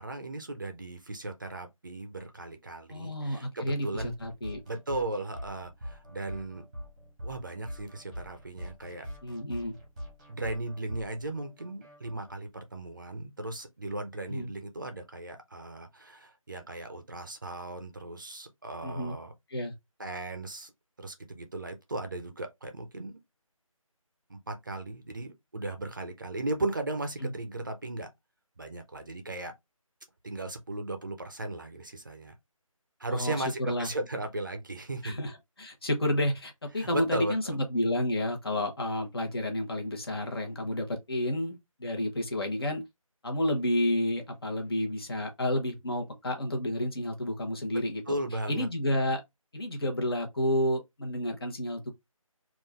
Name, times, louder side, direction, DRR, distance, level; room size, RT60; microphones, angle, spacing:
voice 1, 0.0-4.1 4.7-6.6 7.2-9.1 10.3-19.3 20.0-20.7 21.0-23.2 24.3-28.1 28.6-29.5 30.2-32.3 33.0-35.1 36.7-37.6 48.1-48.7, right 2 dB, 35° right, 0.6 m, -36 dB
voice 2, 2.9-4.6 9.2-9.8 14.3-14.5 18.8-19.2 19.5-19.7 27.2-27.3 33.1-33.9 35.0-42.8 43.2-48.2 48.5-49.2 49.5-51.9, left 1 dB, 45° left, 1.2 m, -30 dB
sound 1, 4.0-12.4, equal, 15° right, 1.0 m, -43 dB
3.8 x 2.5 x 3.3 m
figure-of-eight pair, 170°, 18 cm